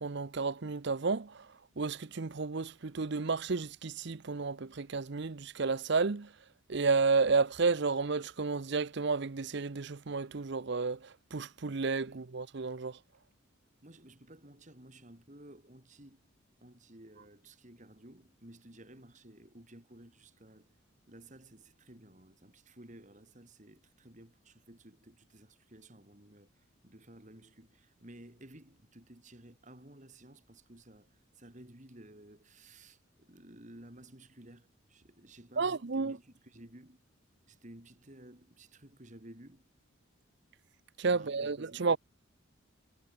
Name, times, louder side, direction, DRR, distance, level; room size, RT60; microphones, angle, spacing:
voice 1, 0.0-1.5 1.8-6.3 6.7-13.0 35.6-36.1 41.0-42.0, right 4 dB, 55° right, 0.7 m, -31 dB
voice 2, 12.1-12.4 13.8-16.3 16.6-20.8 21.1-37.0 37.5-39.7 41.1-42.0, right 1 dB, 35° right, 3.3 m, -55 dB
head